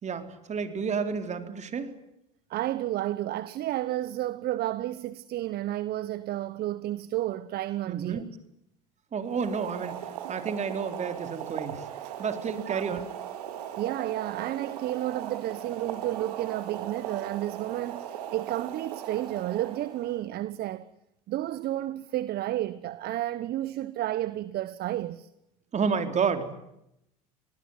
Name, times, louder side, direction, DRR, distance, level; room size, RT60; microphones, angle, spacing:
voice 1, 0.0-1.9 7.9-8.2 9.1-11.9 12.2-13.1 25.7-26.5, right 6 dB, 35° right, 4.1 m, -30 dB
voice 2, 2.5-8.2 12.6-13.0 13.8-20.9 21.3-25.3, right 14 dB, 55° right, 1.2 m, -31 dB
Boiling, 9.2-20.2, right 10 dB, 80° right, 3.7 m, -38 dB
26.5 x 19.5 x 9.9 m
hypercardioid pair, 80°, 20 cm